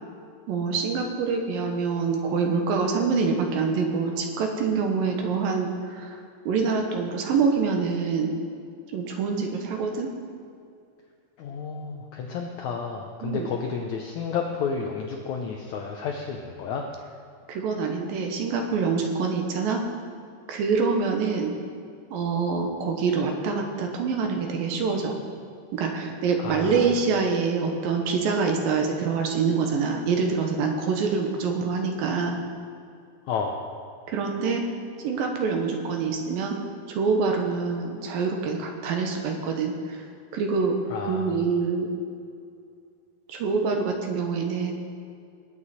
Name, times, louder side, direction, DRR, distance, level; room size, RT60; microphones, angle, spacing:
voice 1, 0.5-6.2 6.5-8.3 8.9-10.1 13.2-13.5 17.5-19.8 20.5-21.5 22.1-25.2 25.7-32.4 34.1-34.7 35.0-36.6 36.9-40.1 40.3-40.7 41.1-41.9 43.3-44.7, right 5 dB, 75° right, 3 dB, 2.7 m, -25 dB
voice 2, 11.4-16.8 26.4-26.9 33.3-33.6 40.9-41.4, left 5 dB, 90° left, 2 dB, 1.6 m, -31 dB
19.5 x 8.6 x 4.2 m, 2.4 s
omnidirectional pair, 4.4 m